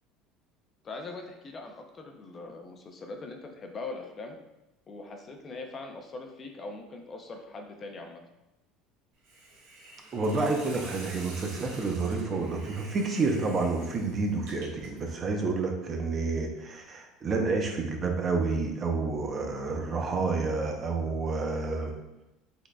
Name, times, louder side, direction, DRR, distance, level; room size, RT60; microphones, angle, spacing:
voice 1, 0.8-4.4 4.9-8.2, left 3 dB, 30° left, 3 dB, 0.5 m, -41 dB
Hiss, 9.2-15.1, right 2 dB, 85° right, 1.4 m, -47 dB
voice 2, 10.1-21.9, right 3 dB, 30° right, 3 dB, 0.7 m, -29 dB
6.1 x 3.6 x 2.3 m, 0.95 s
cardioid pair, 135°, 0 cm